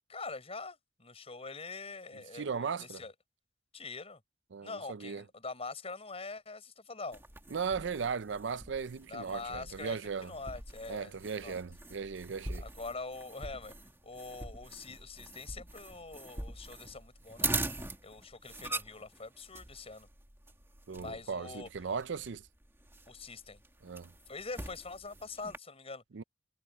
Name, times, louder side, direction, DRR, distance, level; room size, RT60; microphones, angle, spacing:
voice 1, 0.1-3.1 3.7-4.2 4.6-7.2 9.1-11.6 12.6-13.7 14.0-20.1 20.9-21.7 23.1-23.6 24.3-26.0, left 3 dB, 35° left, 6.5 m, -44 dB
voice 2, 2.3-3.0 4.5-5.2 7.5-10.3 10.9-12.6 20.9-22.4 23.8-24.1 26.1-26.2, right 5 dB, 75° right, 0.5 m, -37 dB
sound 1, 7.1-25.6, right 2 dB, 15° right, 1.9 m, -43 dB
head